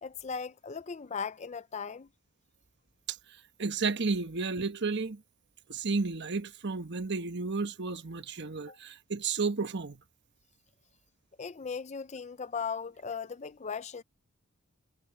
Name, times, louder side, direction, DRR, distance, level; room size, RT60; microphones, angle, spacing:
voice 1, 0.0-2.1 8.7-8.8 11.4-14.0, left 6 dB, 30° left, 0.5 m, -38 dB
voice 2, 3.6-5.2 5.7-10.0, right 4 dB, 50° right, 1.1 m, -32 dB
head